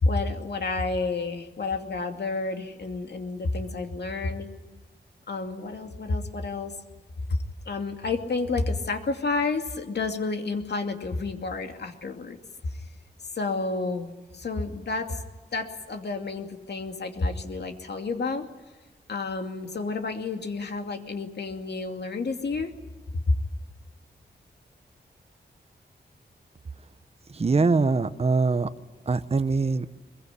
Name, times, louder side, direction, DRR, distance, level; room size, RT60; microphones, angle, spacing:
voice 1, 0.0-4.5 5.3-6.7 7.3-7.4 7.7-12.4 12.8-12.9 13.4-15.2 15.5-18.5 19.1-22.7, left 3 dB, 70° left, 5 dB, 2.6 m, -30 dB
voice 2, 27.3-28.7 29.1-29.9, right 4 dB, 35° right, 11 dB, 0.9 m, -23 dB
23.0 x 22.5 x 10.0 m, 1.1 s
wide cardioid pair, 110°, 18 cm